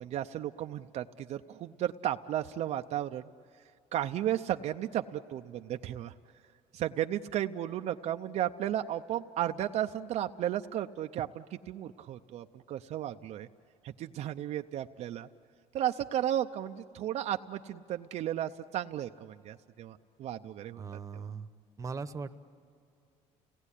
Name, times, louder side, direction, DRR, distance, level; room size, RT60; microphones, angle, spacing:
voice 1, 0.0-3.3 3.9-6.1 6.7-13.5 13.8-15.3 15.7-20.8 21.1-21.3, right 11 dB, 60° right, 6 dB, 0.6 m, -34 dB
voice 2, 20.8-21.5 21.8-22.4, right 5 dB, 25° right, 9 dB, 1.0 m, -39 dB
30.0 x 18.0 x 10.0 m, 2.6 s
cardioid pair, 120°, 13 cm